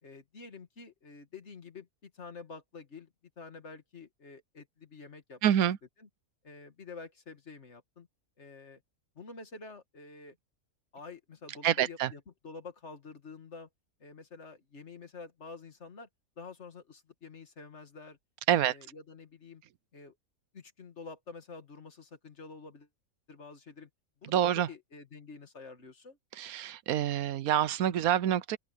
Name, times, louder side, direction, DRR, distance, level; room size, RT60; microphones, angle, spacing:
voice 1, 0.0-5.6 6.0-6.1 6.4-8.1 8.4-8.8 9.2-10.4 10.9-13.7 14.0-16.1 16.4-18.2 18.6-19.6 19.9-20.2 20.5-22.9 23.3-23.9 24.2-26.2, left 4 dB, 50° left, 2.1 m, -48 dB
voice 2, 5.4-5.8 11.6-12.1 18.5-18.7 24.3-24.7 26.4-28.6, right 10 dB, 85° right, 1.2 m, -27 dB
open air
omnidirectional pair, 1.5 m